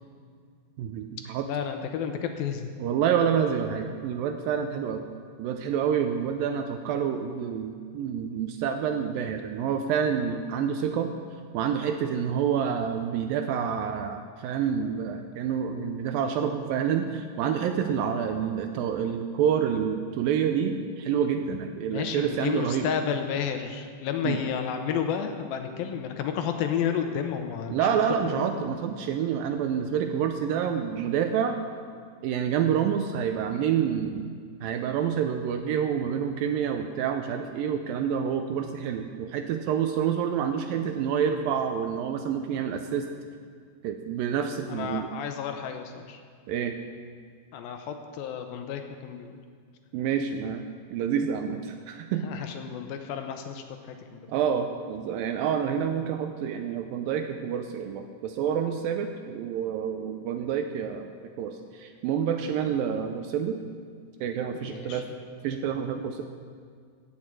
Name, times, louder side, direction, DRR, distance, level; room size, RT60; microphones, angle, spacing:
voice 1, 0.8-1.5 2.8-5.0 5.4-11.1 11.5-22.9 24.2-24.4 27.7-31.6 32.2-34.3 34.6-43.1 43.8-45.1 46.5-46.8 49.9-52.2 54.3-61.1 61.4-63.6 64.2-65.1 65.4-66.2, right 8 dB, 80° right, 6 dB, 2.2 m, -28 dB
voice 2, 1.4-2.7 21.9-27.8 28.2-28.5 44.7-46.2 47.5-49.3 52.2-54.2 64.5-65.1, left 8 dB, 75° left, 6 dB, 2.4 m, -31 dB
16.5 x 6.3 x 7.4 m, 2.1 s
omnidirectional pair, 4.5 m